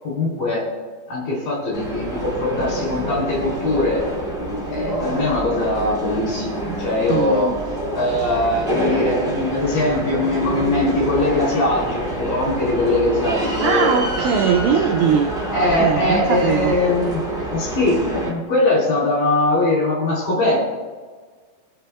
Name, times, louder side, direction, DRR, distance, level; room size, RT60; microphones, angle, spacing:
voice 1, 0.0-0.7 1.1-4.1 4.7-7.5 7.9-13.9 15.5-17.2 17.5-20.6, left 2 dB, 50° left, -3 dB, 4.4 m, -21 dB
sound 1, 1.7-18.3, right 1 dB, 30° right, 1.1 m, -27 dB
voice 2, 7.1-7.6 13.6-15.4 15.7-16.8, right 7 dB, 90° right, 3 dB, 2.5 m, -20 dB
21.0 x 7.0 x 2.3 m, 1.5 s
omnidirectional pair, 5.7 m